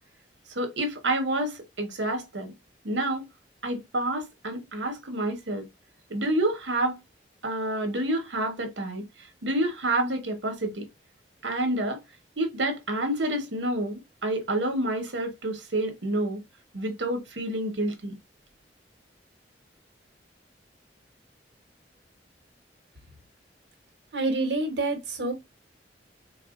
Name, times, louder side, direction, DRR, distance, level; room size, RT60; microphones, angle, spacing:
voice 1, 0.5-2.5 2.8-3.2 3.6-5.6 6.1-7.0 7.4-9.0 9.4-10.9 11.4-12.0 12.4-16.4 16.7-18.1, right 1 dB, 90° right, 1.1 m, -28 dB
voice 2, 24.1-25.3, right 2 dB, 70° right, 1.1 m, -27 dB
4.1 x 2.3 x 2.4 m
head